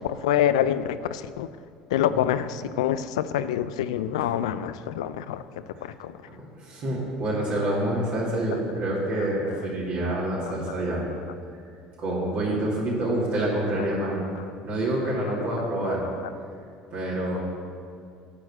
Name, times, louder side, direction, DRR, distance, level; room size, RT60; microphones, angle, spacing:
voice 1, 0.0-1.5 1.9-5.4 5.8-6.1 8.5-8.6 9.2-9.6 10.4-10.5 13.8-13.9 15.2-15.9, left 10 dB, 85° left, 14 dB, 0.3 m, -27 dB
voice 2, 6.3-11.0 12.0-14.2 14.6-16.0 16.9-17.4, right 1 dB, 60° right, -6 dB, 2.4 m, -27 dB
8.5 x 4.7 x 7.1 m, 2.4 s
hypercardioid pair, 80°, 3 cm